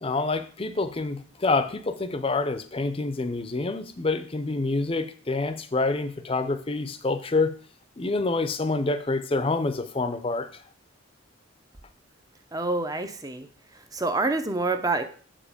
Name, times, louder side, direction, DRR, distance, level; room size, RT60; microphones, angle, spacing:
voice 1, 0.0-7.5 8.0-10.6, left 3 dB, 25° left, 10 dB, 0.6 m, -27 dB
voice 2, 12.5-13.5 13.9-15.0, right 3 dB, 15° right, 9 dB, 0.5 m, -27 dB
7.3 x 5.1 x 5.0 m, 0.43 s
head